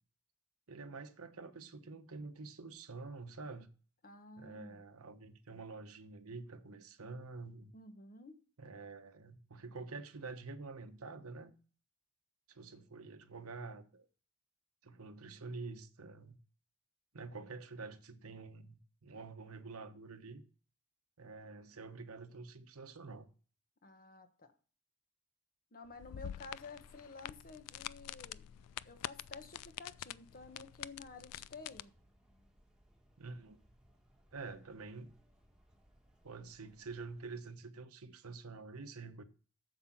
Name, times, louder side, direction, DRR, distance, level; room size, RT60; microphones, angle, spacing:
voice 1, 0.7-3.7 4.4-7.7 8.6-11.5 12.5-14.1 14.8-16.4 17.1-20.4 21.2-23.3 33.2-33.6 34.3-35.1 36.2-39.2, right 3 dB, 70° right, 1.0 m, -48 dB
voice 2, 4.0-4.8 7.7-8.4 23.8-24.5 25.7-28.4 28.8-31.9, left 3 dB, 40° left, 1.3 m, -52 dB
sound 1, 25.8-37.2, equal, 5° right, 1.5 m, -69 dB
sound 2, 26.0-31.8, left 12 dB, 90° left, 0.3 m, -46 dB
7.8 x 7.2 x 5.9 m
head